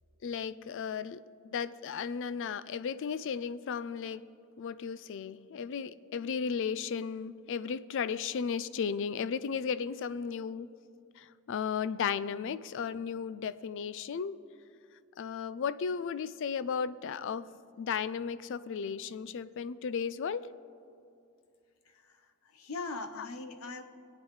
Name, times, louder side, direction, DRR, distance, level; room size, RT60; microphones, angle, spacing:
voice 1, 0.2-1.2 1.5-4.3 4.6-10.7 11.2-14.4 15.2-17.5 17.8-20.5 23.2-23.3, left 6 dB, 60° left, 16 dB, 0.4 m, -35 dB
voice 2, 22.5-23.8, left 3 dB, 80° left, 6 dB, 0.9 m, -40 dB
24.0 x 8.7 x 3.2 m, 2.5 s
head